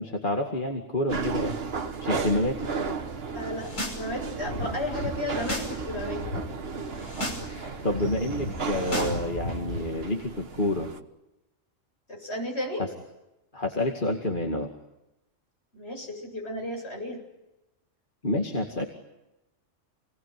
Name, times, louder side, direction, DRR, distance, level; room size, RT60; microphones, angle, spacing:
voice 1, 0.0-1.6 2.0-2.7 7.4-10.9 12.8-12.9 13.5-14.7 18.2-18.9, left 1 dB, 40° left, 2 dB, 2.5 m, -28 dB
sound 1, 1.1-11.0, right 5 dB, 50° right, 1.6 m, -34 dB
voice 2, 3.3-6.5 12.1-12.8 15.7-17.2, left 1 dB, 55° left, 1 dB, 8.3 m, -34 dB
sound 2, 3.5-4.0 4.3-5.7 6.0-6.4 6.9-7.4 7.7-9.8, left 1 dB, 80° left, 5.9 m, -34 dB
29.0 x 20.0 x 9.6 m, 0.95 s
omnidirectional pair, 1.3 m